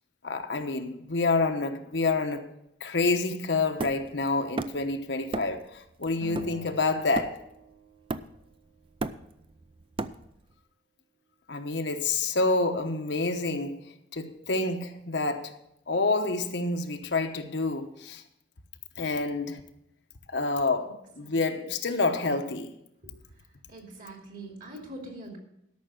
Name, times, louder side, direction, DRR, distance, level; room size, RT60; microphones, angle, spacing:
voice 1, 0.2-2.5 2.8-7.4 11.5-15.6 15.9-18.2 19.0-19.6 20.3-22.7, left 3 dB, 80° left, 1.0 m, -28 dB
Hammer, 3.8-4.9 5.3-5.7 6.0-7.6 8.1-8.5 8.8-10.5, right 2 dB, 30° right, 0.4 m, -35 dB
Acoustic guitar, 6.2-8.6, right 1 dB, 85° right, 1.7 m, -47 dB
voice 2, 23.7-25.4, right 1 dB, 50° right, 2.8 m, -43 dB
13.0 x 6.0 x 6.9 m
head